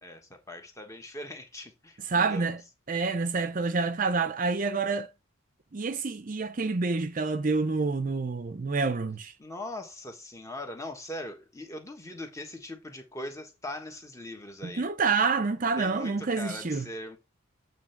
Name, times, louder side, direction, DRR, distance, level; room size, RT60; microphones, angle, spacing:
voice 1, 0.0-2.6 9.4-14.9 15.8-17.2, left 1 dB, 15° left, 1.3 m, -41 dB
voice 2, 2.1-2.6 2.9-5.1 5.7-9.3 14.6-16.9, right 4 dB, 40° right, 0.5 m, -28 dB
8.5 x 3.2 x 5.8 m
head